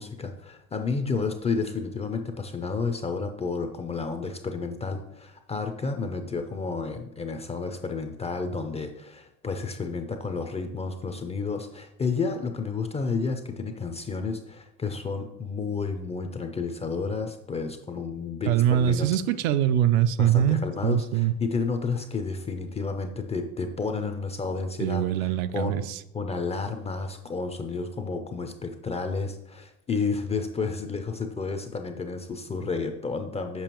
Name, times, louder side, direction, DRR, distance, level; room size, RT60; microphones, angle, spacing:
voice 1, 0.0-19.1 20.2-25.9 26.1-33.6, left 4 dB, 15° left, 6 dB, 0.3 m, -31 dB
voice 2, 18.5-21.3 24.8-26.0, right 10 dB, 70° right, 12 dB, 0.5 m, -23 dB
6.9 x 5.2 x 3.0 m, 0.87 s
supercardioid pair, 100°, 44 cm